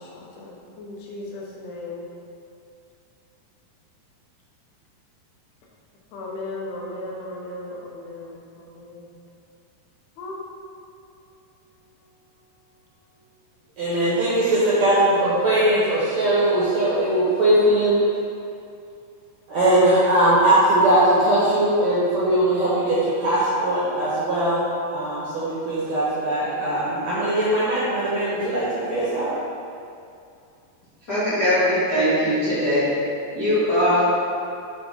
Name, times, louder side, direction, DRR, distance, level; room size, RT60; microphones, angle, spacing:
voice 1, 0.0-2.0 6.1-9.1 10.2-13.2, left 2 dB, 85° left, -3 dB, 3.0 m, -38 dB
voice 2, 13.8-18.0 19.5-29.3, right 1 dB, 70° right, -9 dB, 1.7 m, -20 dB
voice 3, 31.1-32.9 33.3-34.1, equal, 65° left, -13 dB, 1.0 m, -20 dB
6.7 x 4.6 x 4.0 m, 2.5 s
omnidirectional pair, 4.6 m